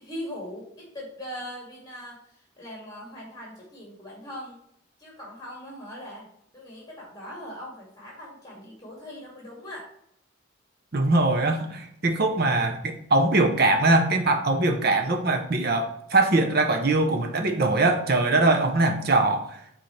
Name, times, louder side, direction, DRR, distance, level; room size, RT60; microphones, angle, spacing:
voice 1, 0.0-2.2 2.6-4.6 5.0-6.3 6.5-9.9, equal, 20° left, -3 dB, 2.3 m, -40 dB
voice 2, 10.9-19.5, right 2 dB, 45° right, 4 dB, 0.8 m, -22 dB
6.6 x 4.4 x 3.3 m, 0.72 s
head